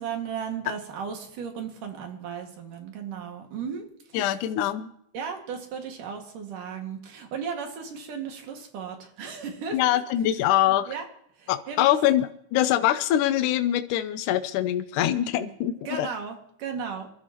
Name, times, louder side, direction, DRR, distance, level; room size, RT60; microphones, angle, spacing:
voice 1, 0.0-3.9 5.1-10.0 10.7-11.1 11.4-12.0 15.9-17.1, right 6 dB, 90° right, 3 dB, 3.6 m, -35 dB
voice 2, 4.1-4.9 9.7-10.9 11.5-16.1, left 12 dB, 80° left, 10 dB, 2.2 m, -24 dB
27.0 x 13.0 x 3.0 m, 0.71 s
omnidirectional pair, 3.6 m